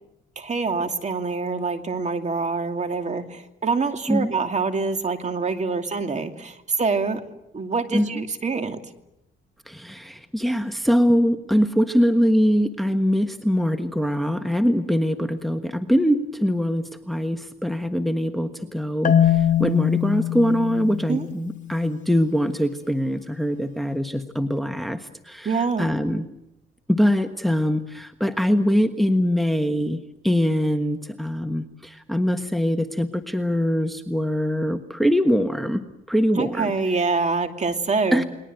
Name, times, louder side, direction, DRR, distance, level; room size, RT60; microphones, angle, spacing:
voice 1, 0.4-7.2 7.5-8.8 21.1-21.3 25.4-25.9 36.3-38.2, right 4 dB, 35° right, 6 dB, 2.6 m, -25 dB
voice 2, 9.7-26.3 26.9-36.7 38.1-38.2, equal, ahead, 8 dB, 1.4 m, -23 dB
Marimba xylophone, 19.0-22.0, left 10 dB, 40° left, 1.4 m, -22 dB
29.5 x 21.0 x 7.9 m, 0.88 s
cardioid pair, 90°, 20 cm